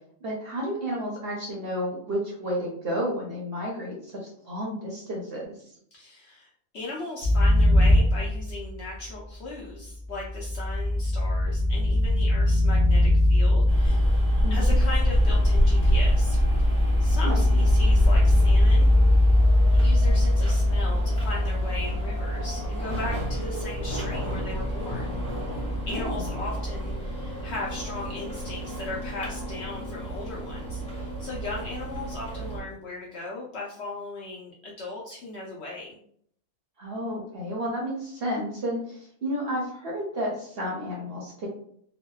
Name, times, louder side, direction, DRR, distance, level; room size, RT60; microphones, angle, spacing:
voice 1, 0.2-5.4 14.4-14.7 17.2-17.4 25.9-26.3 36.8-41.5, equal, 55° right, -3 dB, 0.7 m, -31 dB
voice 2, 5.9-14.1 14.5-18.9 19.7-25.1 25.9-36.0, left 2 dB, 65° left, -4 dB, 0.7 m, -37 dB
sound 1, 7.2-9.0 10.0-26.9, left 1 dB, 70° right, 0.3 m, -22 dB
sound 2, 13.7-32.6, right 1 dB, 5° left, 0.8 m, -29 dB
2.6 x 2.1 x 2.2 m, 0.64 s
omnidirectional pair, 1.5 m